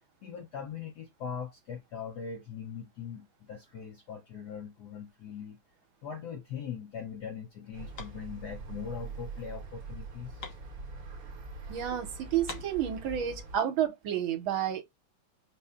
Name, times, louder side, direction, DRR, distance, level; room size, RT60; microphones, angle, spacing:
voice 1, 0.2-5.6 6.0-10.5, left 7 dB, 70° left, 1.0 m, -41 dB
sound 1, 7.0-11.5 11.8-11.9 12.2-13.4, left 5 dB, 55° left, 1.3 m, -49 dB
sound 2, 7.7-13.6, right 3 dB, 55° right, 1.2 m, -43 dB
voice 2, 11.7-14.8, right 10 dB, 70° right, 1.6 m, -30 dB
5.4 x 2.1 x 3.5 m
omnidirectional pair, 2.4 m